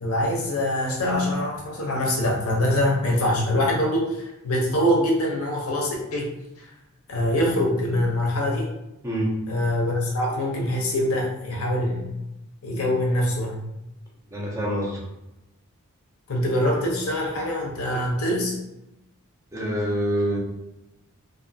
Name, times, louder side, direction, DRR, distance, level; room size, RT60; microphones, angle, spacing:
voice 1, 0.0-6.3 6.6-6.7 7.1-8.7 9.5-12.1 12.6-13.6 16.3-18.6, left 1 dB, 75° left, -1 dB, 0.7 m, -24 dB
voice 2, 9.0-9.4 14.3-15.0 19.5-20.4, equal, 15° right, -2 dB, 0.4 m, -26 dB
2.5 x 2.4 x 2.6 m, 0.90 s
head